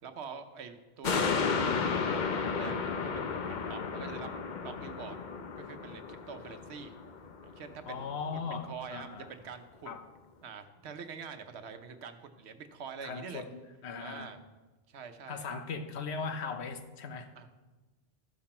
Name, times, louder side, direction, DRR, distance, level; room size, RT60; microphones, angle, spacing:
voice 1, 0.0-4.3 4.6-5.2 5.6-7.0 7.4-9.9 10.4-13.4 13.9-14.4 14.9-15.5 17.4-17.5, right 6 dB, 90° right, 8 dB, 1.0 m, -45 dB
sound 1, 1.0-7.7 8.1-8.2, left 5 dB, 50° left, 0.7 m, -33 dB
voice 2, 7.8-9.3 9.9-10.1 13.0-14.3 15.3-17.3, left 5 dB, 90° left, 7 dB, 1.1 m, -39 dB
13.5 x 5.9 x 4.3 m, 1.2 s
omnidirectional pair, 1.1 m